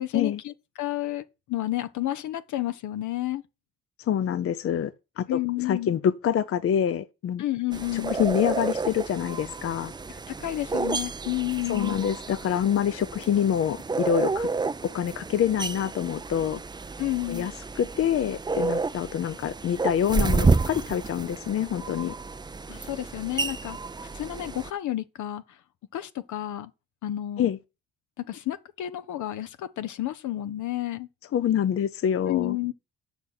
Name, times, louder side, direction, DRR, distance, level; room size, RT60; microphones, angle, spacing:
voice 1, 0.0-3.4 5.3-5.9 7.4-8.2 10.3-12.0 17.0-17.5 22.7-23.8 24.1-25.6 25.9-26.7 27.0-27.5 28.2-31.1 32.3-32.7, left 14 dB, 75° left, 0.9 m, -31 dB
voice 2, 4.0-7.4 7.9-9.9 11.7-14.5 14.8-16.6 17.3-22.1 27.4-27.6 31.3-32.6, left 9 dB, 50° left, 0.6 m, -26 dB
sound 1, 7.7-24.7, right 4 dB, 15° right, 0.4 m, -30 dB
8.2 x 5.7 x 6.5 m
cardioid pair, 90°, 30 cm